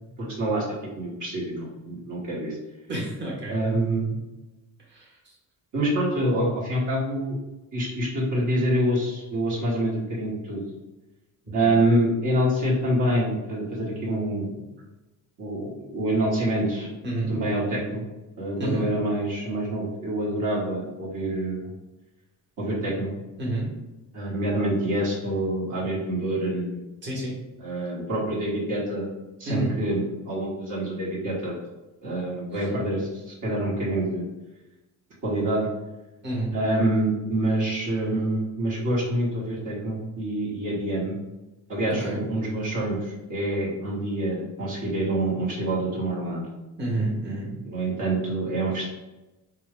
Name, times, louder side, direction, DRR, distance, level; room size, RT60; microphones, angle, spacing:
voice 1, 0.2-2.6 3.5-4.2 5.7-7.4 7.7-10.6 11.5-14.6 15.4-16.9 17.3-18.0 18.4-21.7 22.6-23.1 24.1-26.8 27.6-29.1 29.4-30.0 30.3-31.6 32.0-34.2 35.2-35.7 36.5-41.1 41.7-46.5 47.6-48.9, right 1 dB, 55° right, -6 dB, 1.4 m, -26 dB
voice 2, 2.9-3.6 4.9-5.2 11.6-11.7 17.0-17.3 18.6-18.9 23.4-23.7 27.0-27.4 29.4-29.7 36.2-36.5 41.9-42.2 46.8-47.5, right 1 dB, 30° right, -6 dB, 1.4 m, -29 dB
4.4 x 2.3 x 3.6 m, 1.0 s
cardioid pair, 120°, 38 cm